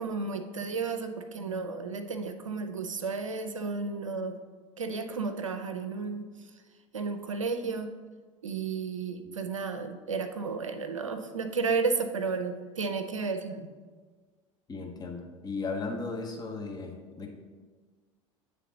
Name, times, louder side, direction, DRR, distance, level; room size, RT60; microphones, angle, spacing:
voice 1, 0.0-4.4 4.8-6.3 6.9-7.9 8.4-13.7, right 4 dB, 85° right, 7 dB, 0.5 m, -32 dB
voice 2, 14.7-17.3, left 3 dB, 25° left, 2 dB, 1.0 m, -36 dB
8.3 x 3.5 x 3.8 m, 1.5 s
figure-of-eight pair, 70°, 16 cm